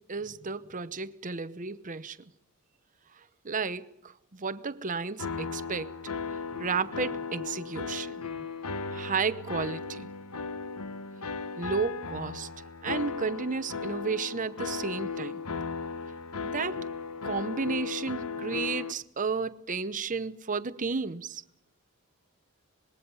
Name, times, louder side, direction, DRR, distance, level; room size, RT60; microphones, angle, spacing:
voice 1, 0.0-2.3 3.4-5.9 6.6-8.5 8.9-10.1 11.6-12.5 12.8-15.4 16.4-16.9 17.2-21.4, right 5 dB, 35° right, 0.9 m, -33 dB
sound 1, 5.2-18.9, left 5 dB, 85° left, 1.2 m, -36 dB
25.5 x 21.0 x 5.5 m
head